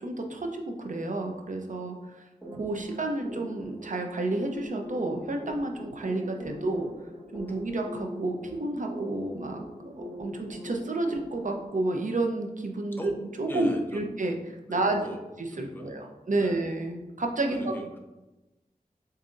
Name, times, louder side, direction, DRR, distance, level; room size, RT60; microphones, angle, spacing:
voice 1, 0.0-2.2 2.5-6.9 7.3-13.1 13.4-14.4 14.7-15.0 15.6-17.7, right 2 dB, 60° right, 3 dB, 0.7 m, -30 dB
sound 1, 2.4-11.7, equal, 5° right, 1.5 m, -42 dB
voice 2, 13.5-14.0 14.7-15.2 15.5-16.7 17.5-18.0, equal, 15° left, 2 dB, 0.8 m, -39 dB
7.4 x 2.7 x 2.5 m, 1.0 s
wide cardioid pair, 55°, 15 cm